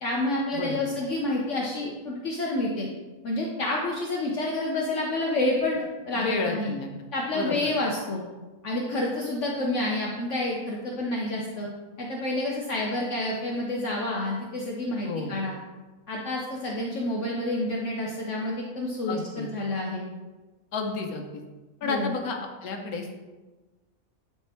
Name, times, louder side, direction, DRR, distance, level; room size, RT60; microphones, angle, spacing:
voice 1, 0.0-2.9 3.2-6.7 7.1-8.2 8.6-11.7 12.0-15.5 16.1-20.0 21.8-22.2, left 2 dB, 60° left, -2 dB, 1.2 m, -29 dB
voice 2, 6.2-6.9 7.3-7.7 15.1-15.4 19.1-19.5 20.7-21.4 21.8-23.1, left 4 dB, 85° left, 3 dB, 1.3 m, -31 dB
10.5 x 3.5 x 4.4 m, 1.2 s
omnidirectional pair, 1.5 m